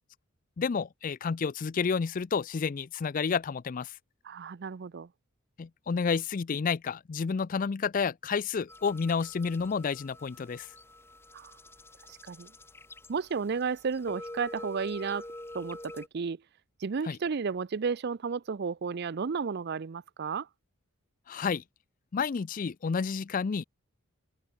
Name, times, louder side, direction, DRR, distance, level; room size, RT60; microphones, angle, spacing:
voice 1, 0.6-3.9 5.6-10.7 17.1-17.2 21.3-21.6 22.1-23.6, left 5 dB, 40° left, 0.4 m, -30 dB
voice 2, 4.2-5.1 11.3-11.5 12.1-12.5 13.1-15.3 15.5-16.4 16.8-20.5, right 5 dB, 50° right, 0.5 m, -33 dB
sound 1, 8.7-16.1, left 1 dB, 10° left, 1.2 m, -46 dB
head